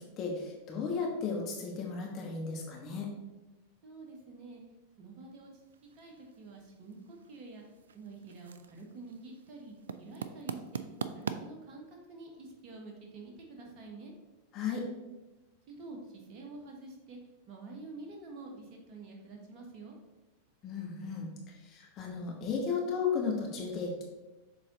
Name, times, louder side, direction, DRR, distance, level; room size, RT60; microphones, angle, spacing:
voice 1, 0.0-3.1 14.5-14.8 20.6-21.3 21.6-24.0, left 5 dB, 35° left, 0 dB, 1.3 m, -34 dB
voice 2, 3.8-4.6 5.0-5.5 5.9-7.6 7.9-10.8 11.1-14.1 15.7-17.2 17.5-19.9, right 3 dB, 40° right, 0 dB, 1.5 m, -48 dB
sound 1, 5.6-11.4, right 6 dB, 70° right, 0.4 m, -43 dB
6.5 x 3.9 x 3.9 m, 1.1 s
figure-of-eight pair, 90°, 0 cm